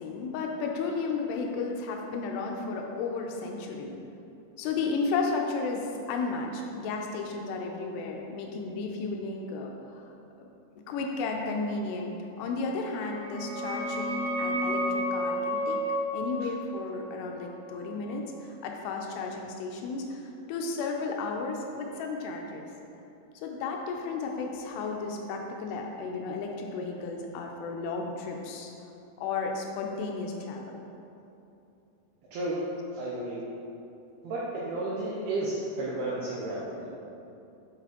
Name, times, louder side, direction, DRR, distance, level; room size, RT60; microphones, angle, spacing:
voice 1, 0.0-4.0 4.6-5.8 6.1-10.1 10.9-15.8 16.1-20.2 20.5-22.7 23.4-28.7 29.2-30.7, left 4 dB, 85° left, 1 dB, 2.4 m, -33 dB
sound 1, 12.9-18.4, equal, 65° right, 2.7 m, -32 dB
voice 2, 32.9-33.4 34.2-36.9, right 2 dB, 85° right, -6 dB, 2.3 m, -32 dB
7.5 x 5.9 x 2.9 m, 2.7 s
omnidirectional pair, 5.2 m